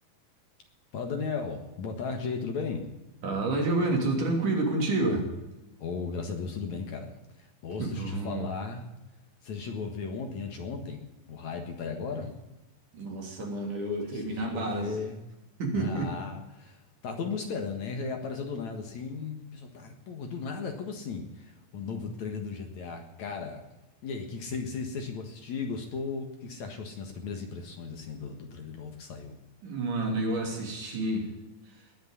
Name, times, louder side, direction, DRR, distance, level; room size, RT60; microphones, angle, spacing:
voice 1, 0.9-2.9 5.8-7.1 7.4-8.8 9.4-11.0 11.3-12.3 14.1-15.2 15.7-16.8 17.0-23.6 24.0-29.4, left 5 dB, 60° left, 4 dB, 2.7 m, -36 dB
voice 2, 3.2-5.3 7.8-8.5 12.9-15.0 15.6-16.1 29.6-31.3, right 2 dB, 60° right, 1 dB, 4.5 m, -29 dB
19.5 x 6.7 x 9.8 m, 0.98 s
omnidirectional pair, 4.1 m